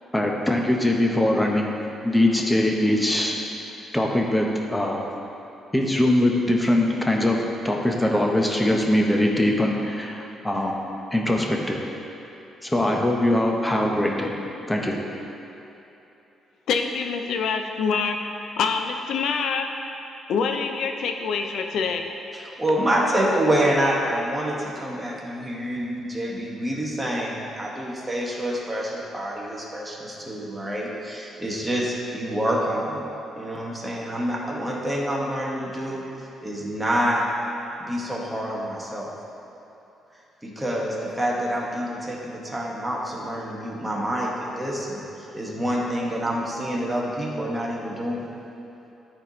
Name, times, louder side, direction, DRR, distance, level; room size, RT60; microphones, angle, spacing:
voice 1, 0.1-1.7 2.0-3.4 3.9-5.1 5.7-7.4 7.6-10.8 11.1-11.9 12.6-14.4 14.7-15.0, left 1 dB, 10° left, 0 dB, 1.0 m, -22 dB
voice 2, 16.7-18.2 18.6-19.7 20.3-22.1, left 5 dB, 75° left, 5 dB, 0.6 m, -25 dB
voice 3, 22.3-33.0 33.3-37.2 37.8-39.1 40.4-45.0 45.3-48.3, equal, 15° right, -4 dB, 1.7 m, -27 dB
13.5 x 4.5 x 3.2 m, 2.9 s
cardioid pair, 90°, 0 cm